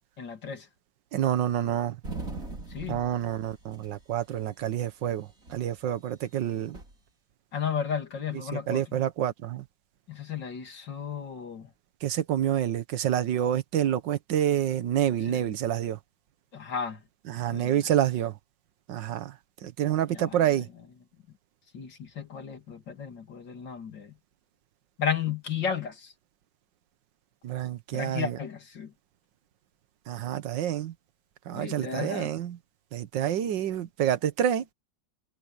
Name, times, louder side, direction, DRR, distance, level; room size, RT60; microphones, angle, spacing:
voice 1, 0.2-0.7 2.7-3.0 7.5-9.0 10.1-11.7 15.3-15.5 16.5-17.0 17.5-17.9 20.1-20.6 21.7-24.1 25.0-26.1 27.9-28.9 31.5-32.3, left 7 dB, 80° left, 3.3 m, -34 dB
voice 2, 1.1-2.0 2.9-6.8 8.7-9.6 12.0-16.0 17.3-18.3 18.9-19.3 19.6-20.7 27.4-28.4 30.1-30.9 31.5-32.6 32.9-34.6, right 11 dB, 85° right, 1.7 m, -28 dB
sound 1, 2.0-4.0 4.3-4.4 5.0-5.7 6.5-6.9, right 3 dB, 50° right, 5.1 m, -40 dB
omnidirectional pair, 1.9 m